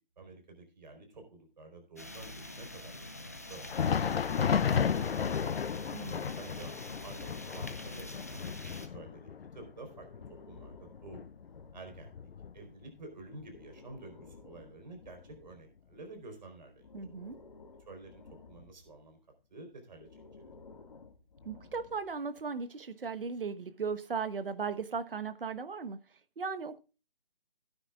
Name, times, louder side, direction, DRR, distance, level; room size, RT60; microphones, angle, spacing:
voice 1, 0.2-3.9 4.4-5.4 6.3-6.7 7.0-10.1 10.4-11.3 11.7-12.1 12.5-16.9 17.9-19.2 19.5-20.5, right 2 dB, 50° right, 4.2 m, -50 dB
sound 1, 2.0-8.9, left 2 dB, 15° left, 0.5 m, -45 dB
Thunder, 3.5-13.0 13.3-13.5 14.2-14.4 15.3-15.4, left 7 dB, 90° left, 0.6 m, -34 dB
voice 2, 5.9-6.4 16.9-17.4 21.4-26.0 26.4-26.8, right 5 dB, 70° right, 1.2 m, -37 dB
Breathing, 6.7-9.1 9.9-12.2 13.3-16.2 16.8-19.0 19.9-22.2, left 4 dB, 45° left, 1.8 m, -55 dB
16.5 x 9.7 x 2.4 m
hypercardioid pair, 165°, 29 cm